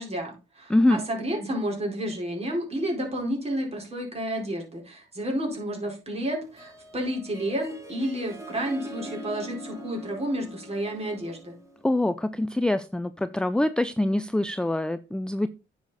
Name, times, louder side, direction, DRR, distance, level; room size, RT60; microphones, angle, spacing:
voice 1, 0.0-11.5, right 1 dB, 30° right, 4.4 m, -31 dB
voice 2, 0.7-1.0 11.8-15.5, left 1 dB, 5° left, 0.4 m, -24 dB
Harp, 6.4-12.0, equal, 15° right, 3.4 m, -43 dB
9.5 x 6.5 x 4.1 m
cardioid pair, 90°, 20 cm